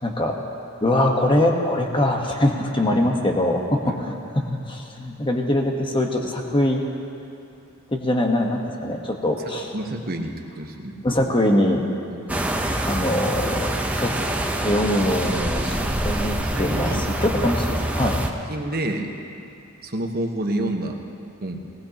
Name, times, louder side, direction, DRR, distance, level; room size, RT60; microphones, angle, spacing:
voice 1, 0.0-0.4 0.8-6.8 7.9-9.7 11.0-11.9 12.6-14.1 14.6-18.2, left 1 dB, 25° left, 1 dB, 1.2 m, -23 dB
voice 2, 9.5-11.0 12.1-12.5 15.7-16.0 16.4-17.0 18.5-19.2 19.8-21.0 21.4-21.7, right 1 dB, 50° right, 2 dB, 1.2 m, -29 dB
sound 1, 12.3-18.3, right 1 dB, 5° right, 0.8 m, -25 dB
19.0 x 19.0 x 2.9 m, 2.7 s
head